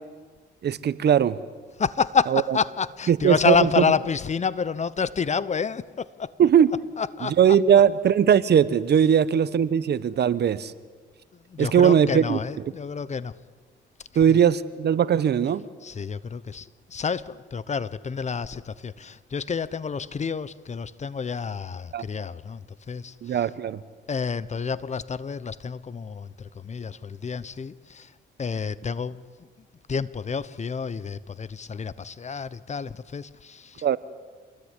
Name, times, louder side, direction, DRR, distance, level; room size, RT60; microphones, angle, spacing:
voice 1, 0.6-1.4 2.3-2.4 3.1-3.8 6.4-6.7 7.4-10.7 11.6-12.4 14.1-15.6 21.9-22.0 23.2-23.8 33.8-34.0, right 8 dB, 55° right, 16 dB, 1.2 m, -19 dB
voice 2, 1.8-6.3 7.0-7.6 11.3-13.4 14.3-14.4 15.8-23.5 24.1-28.1 28.4-29.5 29.9-34.0, left 6 dB, 35° left, 17 dB, 1.0 m, -29 dB
27.5 x 20.5 x 10.0 m, 1.5 s
cardioid pair, 90°, 20 cm